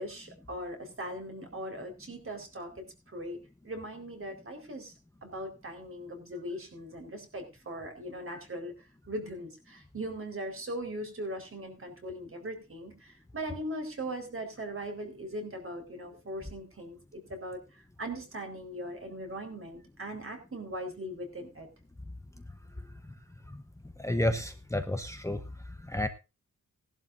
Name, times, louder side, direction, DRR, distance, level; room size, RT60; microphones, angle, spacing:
voice 1, 0.0-3.4 3.6-4.9 5.2-21.7, right 1 dB, 40° right, 4 dB, 4.4 m, -40 dB
voice 2, 24.0-25.4 25.9-26.1, left 1 dB, 10° left, 7 dB, 0.9 m, -30 dB
19.0 x 11.5 x 2.6 m, 0.28 s
wide cardioid pair, 145°, 32 cm